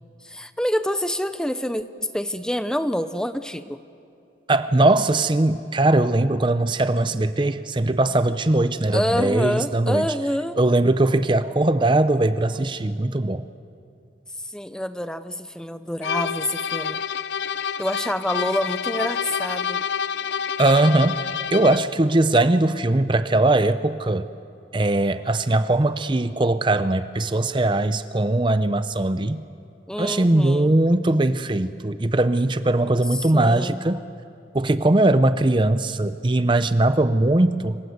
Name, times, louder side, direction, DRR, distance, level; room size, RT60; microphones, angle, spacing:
voice 1, 0.2-3.8 8.9-10.6 14.5-17.0 17.8-19.8 29.9-30.8 33.3-33.8, equal, 5° left, 11 dB, 0.7 m, -27 dB
voice 2, 4.5-10.1 10.6-13.5 20.6-24.3 24.7-29.4 30.0-34.0 34.5-37.8, right 2 dB, 30° right, 12 dB, 0.6 m, -20 dB
sound 1, 16.0-22.0, left 7 dB, 90° left, 0.6 m, -28 dB
27.0 x 26.0 x 8.0 m, 2.5 s
head